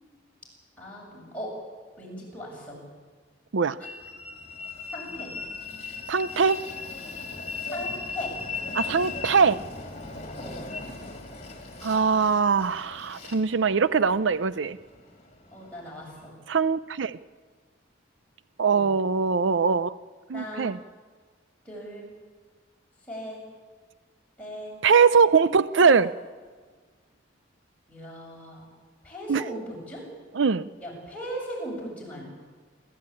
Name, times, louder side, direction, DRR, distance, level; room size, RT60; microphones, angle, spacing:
voice 1, 0.8-1.5 2.0-2.8 4.9-5.3 7.6-8.3 10.4-10.6 15.5-16.3 18.6-18.9 20.3-20.7 21.6-22.1 23.1-23.4 24.4-24.7 25.8-25.9 27.9-28.7 29.0-29.6 29.9-30.1 30.8-32.2, equal, 5° left, -4 dB, 7.2 m, -38 dB
Train, 3.8-16.3, left 4 dB, 35° left, 3.2 m, -38 dB
voice 2, 6.1-6.6 8.7-9.6 11.8-14.8 16.5-17.2 18.6-19.9 20.3-20.8 24.8-26.1 29.3-29.4 30.3-30.7, right 5 dB, 75° right, 16 dB, 0.5 m, -22 dB
27.5 x 13.5 x 8.7 m, 1.5 s
head